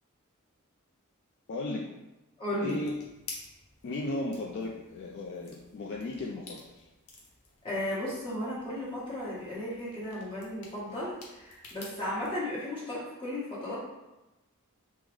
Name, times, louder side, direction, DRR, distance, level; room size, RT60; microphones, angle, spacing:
voice 1, 1.5-1.9 2.6-2.9 3.8-6.9, left 2 dB, 55° left, -3 dB, 0.3 m, -35 dB
voice 2, 2.4-2.7 7.6-13.9, left 1 dB, 25° left, -8 dB, 1.1 m, -35 dB
sound 1, 2.6-12.3, left 3 dB, 85° left, 0.7 m, -51 dB
3.6 x 2.0 x 3.1 m, 1.0 s
head